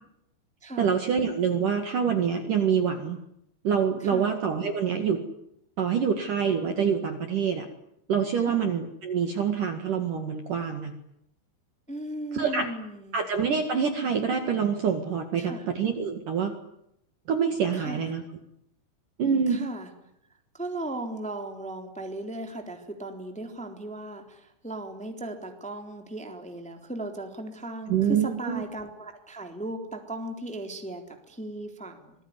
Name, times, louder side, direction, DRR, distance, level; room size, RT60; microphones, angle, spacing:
voice 1, 0.8-3.2 3.6-5.2 5.8-7.7 8.1-10.9 12.3-12.7 13.1-16.5 17.3-18.2 19.2-19.7 27.9-28.6, right 7 dB, 55° right, 6 dB, 2.8 m, -26 dB
voice 2, 11.9-13.2 15.4-15.6 17.7-18.1 19.5-19.9 20.5-32.1, right 1 dB, ahead, 4 dB, 2.7 m, -37 dB
26.5 x 21.0 x 9.7 m, 0.78 s
omnidirectional pair, 5.5 m